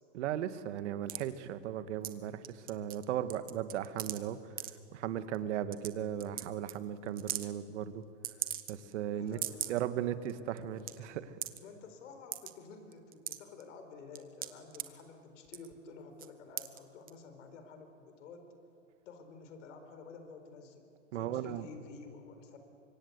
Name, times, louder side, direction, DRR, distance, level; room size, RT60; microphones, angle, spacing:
voice 1, 0.1-4.4 4.9-8.0 8.7-9.4 9.7-11.3 21.1-21.7, right 10 dB, 65° right, 12 dB, 1.7 m, -36 dB
sound 1, 1.1-1.2 2.0-2.2 2.4-3.0 3.3-4.2 4.6-4.7 5.3-5.4 5.7-5.9 6.2-6.4 6.7-6.8 7.2-7.5 8.2-8.9 9.3-9.8 10.2-10.3 10.6-10.9 11.4-11.6 12.3-12.5 12.9-13.6 14.1-14.8 15.5-15.7 16.2-16.3 16.6-16.8 17.1-17.2, right 12 dB, 25° right, 1.1 m, -38 dB
voice 2, 9.1-9.9 11.6-18.5 19.1-22.6, left 4 dB, 70° left, 7 dB, 4.4 m, -51 dB
25.0 x 23.0 x 8.2 m, 2.6 s
hypercardioid pair, 130°, 38 cm